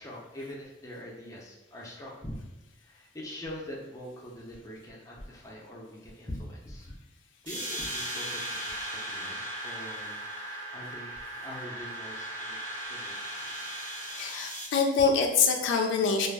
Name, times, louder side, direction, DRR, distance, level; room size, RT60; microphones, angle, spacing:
voice 1, 0.0-2.4 2.8-6.9 7.4-11.1 11.4-12.6 12.9-13.1, left 1 dB, 20° left, -4 dB, 0.5 m, -43 dB
sound 1, 7.5-14.7, right 1 dB, 80° right, 1.2 m, -37 dB
voice 2, 14.1-16.3, left 5 dB, 75° left, 3 dB, 0.3 m, -25 dB
2.3 x 2.1 x 3.3 m, 1.0 s
head